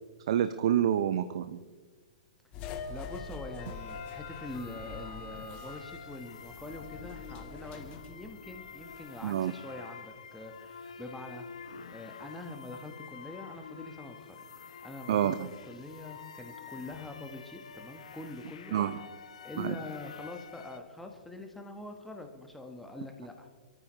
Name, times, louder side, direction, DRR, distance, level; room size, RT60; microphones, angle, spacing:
voice 1, 0.3-1.6 9.2-9.5 15.1-15.5 18.7-19.0 19.6-19.8, right 10 dB, 50° right, 12 dB, 0.7 m, -28 dB
sound 1, 2.5-9.0, left 5 dB, 30° left, 1.7 m, -44 dB
voice 2, 2.9-11.5 11.9-14.4 14.8-15.3 15.7-18.7 19.4-23.5, left 2 dB, 5° left, 3 dB, 1.3 m, -44 dB
sound 2, 3.6-20.8, left 6 dB, 60° left, 1.0 m, -48 dB
24.5 x 14.0 x 3.2 m, 1.4 s
figure-of-eight pair, 110°, 4 cm